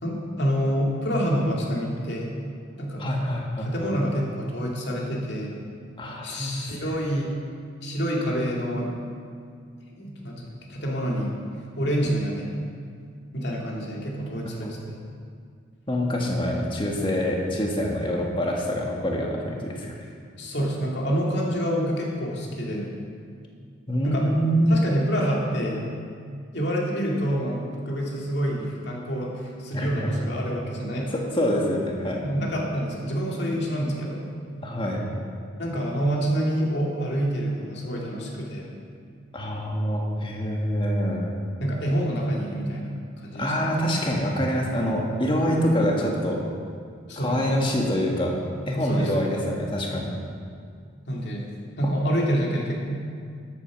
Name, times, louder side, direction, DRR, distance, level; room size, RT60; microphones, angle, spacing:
voice 1, 0.0-2.3 2.8-3.1 3.6-5.6 6.2-7.4 7.8-8.9 10.0-11.4 11.8-12.6 13.3-15.0 20.4-22.9 24.0-24.2 24.7-25.8 26.5-31.1 32.2-34.3 35.6-38.7 41.6-44.0 47.1-47.4 48.8-49.4 51.1-51.5 51.8-53.0, equal, 55° left, -2 dB, 2.4 m, -27 dB
voice 2, 3.0-3.7 6.0-6.5 6.8-6.9 14.5-14.7 15.9-19.9 23.9-24.8 29.7-30.1 31.1-32.2 34.6-35.0 39.3-41.3 43.4-46.4 47.2-48.3 48.7-50.2, equal, 25° left, -1 dB, 1.7 m, -25 dB
13.0 x 8.8 x 6.1 m, 2.2 s
head